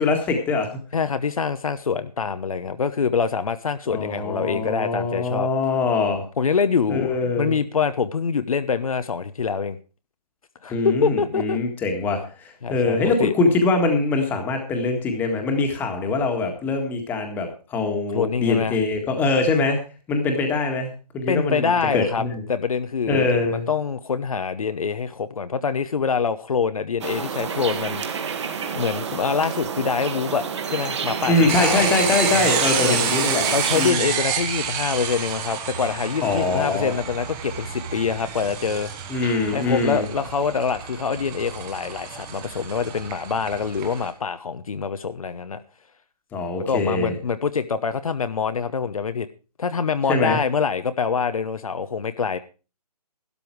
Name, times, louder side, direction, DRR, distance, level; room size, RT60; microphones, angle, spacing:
voice 1, 0.0-0.8 3.9-6.2 6.9-7.6 10.7-19.8 20.1-22.4 23.1-23.7 31.3-34.1 36.2-36.9 39.1-40.1 46.3-47.2 50.1-50.4, left 3 dB, 10° left, 4 dB, 1.7 m, -23 dB
voice 2, 0.9-5.5 6.4-9.8 10.6-11.6 12.6-13.3 18.1-18.8 21.3-22.2 22.5-28.0 28.3-31.9 32.8-33.1 33.5-38.9 39.5-45.6 46.6-49.3 49.6-52.4, left 5 dB, 60° left, 11 dB, 1.0 m, -25 dB
sound 1, 27.0-33.9, right 6 dB, 45° right, 1.8 m, -29 dB
sound 2, 31.5-44.1, right 7 dB, 15° right, 1.2 m, -29 dB
12.5 x 12.0 x 4.7 m, 0.34 s
figure-of-eight pair, 155°, 21 cm